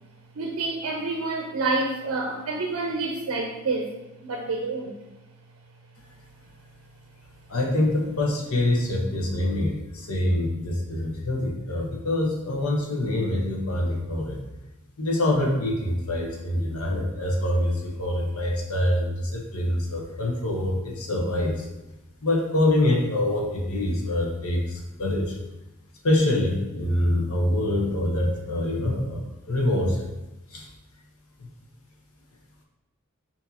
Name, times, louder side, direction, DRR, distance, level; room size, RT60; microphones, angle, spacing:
voice 1, 0.3-3.9 4.2-4.9, right 3 dB, 85° right, 2 dB, 0.5 m, -28 dB
voice 2, 7.5-14.4 15.0-21.7 22.2-25.4 26.0-30.1 30.5-30.7, left 1 dB, 85° left, 0 dB, 0.9 m, -25 dB
6.8 x 2.8 x 2.7 m, 1.0 s
head